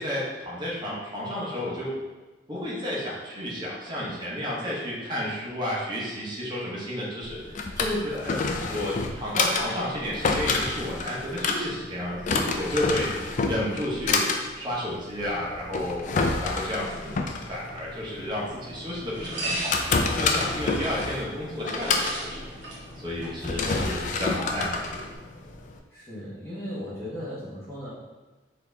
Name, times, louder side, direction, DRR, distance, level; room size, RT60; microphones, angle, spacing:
voice 1, 0.0-1.9 2.5-8.4 8.7-13.1 13.5-14.3 14.5-16.1 16.4-17.2 17.4-22.4 23.0-25.0, left 1 dB, 25° right, -6 dB, 1.0 m, -31 dB
Drawer open or close, 7.2-25.8, left 4 dB, 40° left, 0.4 m, -29 dB
sound 1, 17.2-25.2, right 1 dB, 70° right, 1.0 m, -38 dB
voice 2, 23.6-23.9 25.9-27.9, equal, 15° left, -11 dB, 1.3 m, -37 dB
4.5 x 2.8 x 3.5 m, 1.2 s
head